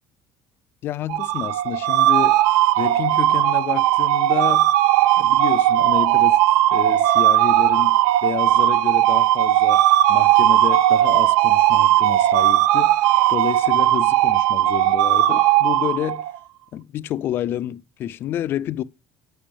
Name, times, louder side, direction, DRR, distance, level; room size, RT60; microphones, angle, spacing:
voice 1, 0.8-2.4 2.8-4.7 5.2-6.4 6.7-9.8 10.1-16.2 16.7-18.8, left 11 dB, 40° left, 0.4 m, -29 dB
sound 1, 1.1-16.4, right 14 dB, 80° right, 0.4 m, -17 dB
8.8 x 6.0 x 3.3 m
cardioid pair, 175°, 6 cm